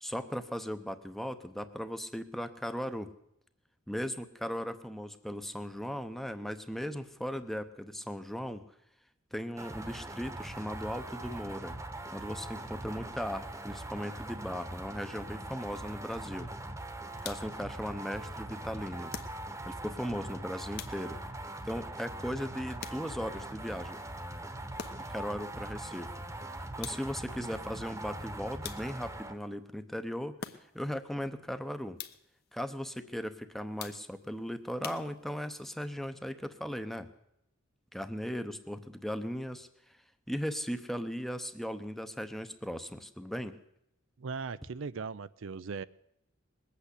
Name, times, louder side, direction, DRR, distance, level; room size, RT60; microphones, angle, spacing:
voice 1, 0.0-3.1 3.9-8.6 9.3-11.7 12.1-16.5 17.2-19.1 19.6-21.2 21.6-24.0 25.1-26.1 26.8-30.4 30.7-32.0 32.5-37.1 37.9-39.7 40.3-43.5, equal, ahead, 10 dB, 0.8 m, -37 dB
sound 1, 9.6-29.4, right 1 dB, 15° right, 1.1 m, -42 dB
sound 2, 17.2-17.7 19.1-19.8 20.8-21.4 22.8-23.4 24.8-25.3 26.8-27.3 28.6-29.2 30.4-31.0 32.0-32.4 33.8-34.3 34.8-35.6, left 7 dB, 50° left, 1.0 m, -45 dB
voice 2, 44.2-45.8, right 5 dB, 65° right, 15 dB, 0.5 m, -38 dB
21.0 x 8.5 x 8.2 m, 0.80 s
head